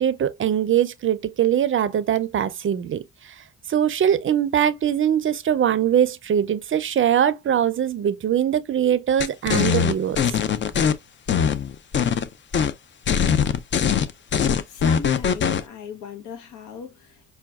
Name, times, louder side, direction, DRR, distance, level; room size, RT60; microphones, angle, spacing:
voice 1, 0.0-3.0 3.7-10.4, right 9 dB, 45° right, 0.5 m, -22 dB
sound 1, 9.2-10.9 11.3-12.2 12.5-12.7 13.1-15.6, left 7 dB, 40° left, 0.5 m, -21 dB
voice 2, 14.7-17.3, left 6 dB, 75° left, 1.0 m, -37 dB
5.6 x 2.2 x 2.3 m
cardioid pair, 90°, 30 cm